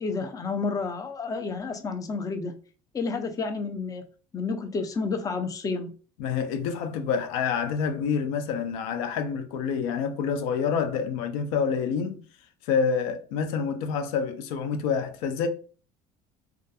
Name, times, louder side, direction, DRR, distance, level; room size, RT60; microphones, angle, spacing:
voice 1, 0.0-2.6 2.9-4.0 4.3-5.9, left 4 dB, 20° left, 0.4 m, -30 dB
voice 2, 6.2-12.2 12.6-15.5, left 6 dB, 85° left, 0.5 m, -27 dB
2.6 x 2.4 x 2.2 m
supercardioid pair, 90°, 17 cm